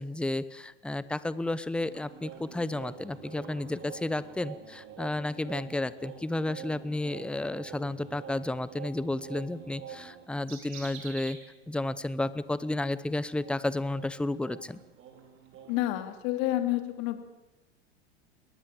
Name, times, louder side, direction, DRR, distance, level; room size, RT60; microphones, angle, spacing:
voice 1, 0.0-11.4 11.7-14.8, left 2 dB, 5° left, 16 dB, 0.8 m, -32 dB
sound 1, 1.8-11.5 11.8-11.9 12.3-16.1, right 7 dB, 40° right, 4.6 m, -47 dB
voice 2, 15.7-17.2, left 14 dB, 55° left, 8 dB, 2.8 m, -29 dB
21.5 x 18.5 x 7.6 m, 1.0 s
hypercardioid pair, 100°, 32 cm